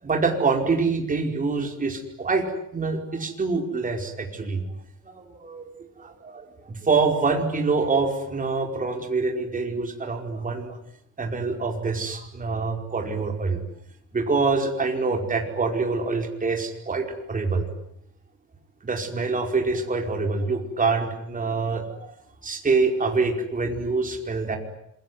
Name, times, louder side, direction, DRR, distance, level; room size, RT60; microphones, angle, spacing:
voice 1, 0.0-2.4 2.7-4.6 5.0-5.7 6.2-10.8 11.2-13.6 14.1-17.7 18.8-22.1 22.4-24.6, right 4 dB, 25° right, 3 dB, 4.9 m, -25 dB
27.0 x 22.0 x 9.7 m, 0.75 s
cardioid pair, 140°, 32 cm